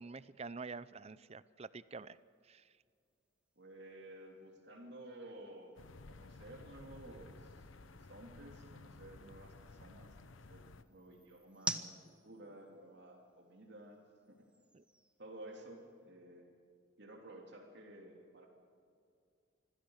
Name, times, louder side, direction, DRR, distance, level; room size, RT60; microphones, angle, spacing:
voice 1, 0.0-2.2 2.4-2.7 14.7-14.8, right 4 dB, 30° right, 17 dB, 0.5 m, -47 dB
sound 1, 1.9-16.1, right 2 dB, 5° right, 0.8 m, -51 dB
voice 2, 3.6-5.7 6.1-14.5 15.2-16.5 17.0-18.5, right 1 dB, 55° right, 1 dB, 3.1 m, -54 dB
sound 2, 5.7-10.8, left 3 dB, 75° left, 0.9 m, -55 dB
25.5 x 16.0 x 6.5 m, 2.3 s
head